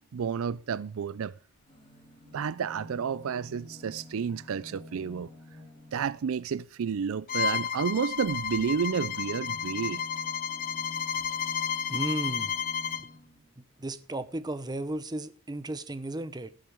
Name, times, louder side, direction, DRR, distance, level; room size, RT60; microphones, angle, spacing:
voice 1, 0.1-1.4 2.3-5.3 5.9-10.0, right 6 dB, 65° right, 0.4 m, -31 dB
sound 1, 1.5-6.4 8.1-13.5 14.5-14.6 14.8-14.9, left 1 dB, 20° left, 2.3 m, -49 dB
Bowed string instrument, 7.3-13.1, left 7 dB, 40° left, 0.5 m, -32 dB
voice 2, 11.9-12.5 13.6-16.5, right 1 dB, 20° right, 0.8 m, -34 dB
17.5 x 7.6 x 3.5 m
head